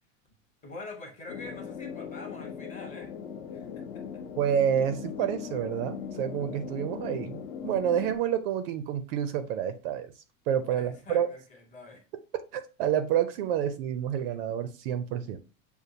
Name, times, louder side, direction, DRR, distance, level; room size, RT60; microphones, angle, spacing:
voice 1, 0.6-3.1 3.5-4.2 10.7-12.0, left 2 dB, 20° left, 0.7 m, -45 dB
sound 1, 1.3-8.2, left 7 dB, 60° left, 0.8 m, -39 dB
voice 2, 4.4-10.1 10.5-11.3 12.3-15.4, right 9 dB, 45° right, 0.4 m, -29 dB
6.6 x 2.3 x 2.7 m
supercardioid pair, 145°, 41 cm